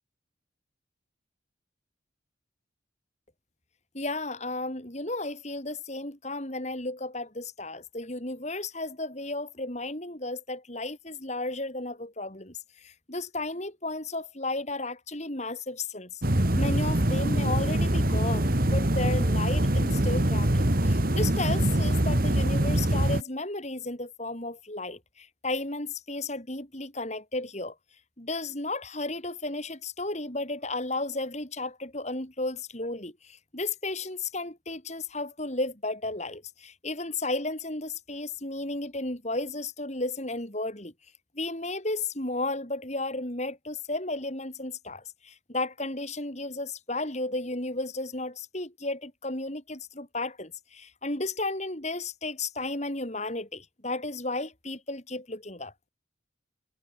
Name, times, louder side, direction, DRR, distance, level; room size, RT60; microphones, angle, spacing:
voice 1, 3.9-12.6 12.8-16.1 16.6-27.7 28.2-33.1 33.5-40.9 41.4-55.7, left 2 dB, 35° left, 3.7 m, -33 dB
sound 1, 16.2-23.2, right 1 dB, 45° right, 2.2 m, -24 dB
head